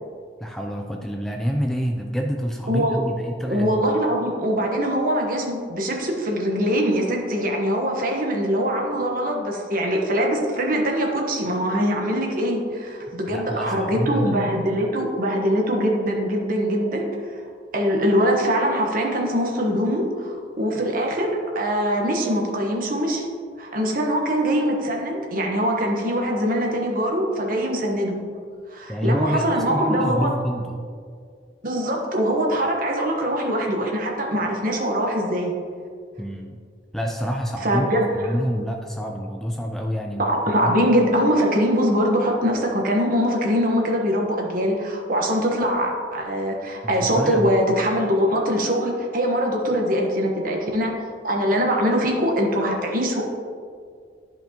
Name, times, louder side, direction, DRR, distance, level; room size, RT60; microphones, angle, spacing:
voice 1, 0.4-3.8 13.3-14.3 28.9-30.9 36.2-36.6 36.9-37.9 38.2-40.8 46.8-47.6, equal, ahead, 2 dB, 0.3 m, -27 dB
voice 2, 2.7-3.0 3.4-17.0 17.7-23.2 23.6-28.2 28.7-30.3 31.6-35.5 37.6-38.3 40.2-50.9 51.2-53.3, equal, 50° right, 0 dB, 1.1 m, -22 dB
11.5 x 5.2 x 2.9 m, 2.1 s
head